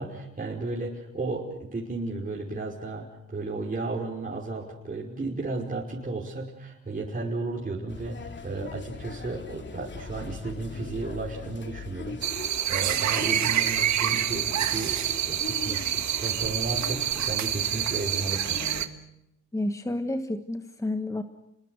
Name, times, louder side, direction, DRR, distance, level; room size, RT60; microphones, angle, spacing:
voice 1, 0.0-17.0 17.3-18.6, right 3 dB, 25° right, -3 dB, 5.3 m, -34 dB
sound 1, 7.9-18.9, left 4 dB, 40° left, 2.7 m, -40 dB
sound 2, 12.2-18.9, right 10 dB, 65° right, 1.8 m, -27 dB
voice 2, 19.5-21.2, left 1 dB, 10° left, 8 dB, 1.5 m, -30 dB
30.0 x 22.0 x 6.6 m, 0.85 s
cardioid pair, 90°, 30 cm